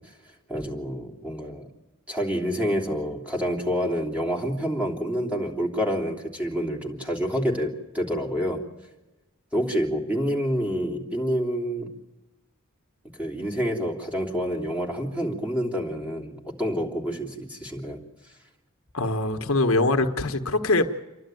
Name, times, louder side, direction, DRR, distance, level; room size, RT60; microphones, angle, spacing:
voice 1, 0.5-1.7 2.1-8.6 9.5-12.0 13.1-18.0, equal, 5° right, -2 dB, 3.2 m, -28 dB
voice 2, 18.9-20.9, left 2 dB, 70° left, 6 dB, 1.3 m, -23 dB
28.5 x 12.0 x 9.1 m, 1.1 s
head